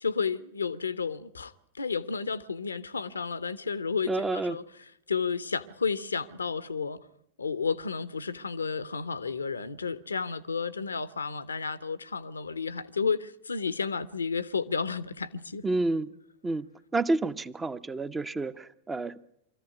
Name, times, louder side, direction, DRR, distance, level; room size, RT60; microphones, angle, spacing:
voice 1, 0.0-4.6 5.1-7.0 7.4-15.6, left 5 dB, 75° left, 0.9 m, -32 dB
voice 2, 4.1-4.6 15.6-16.1 16.4-16.7 16.9-19.2, right 2 dB, 15° right, 0.8 m, -29 dB
24.0 x 14.5 x 9.5 m
figure-of-eight pair, 90°, 0 cm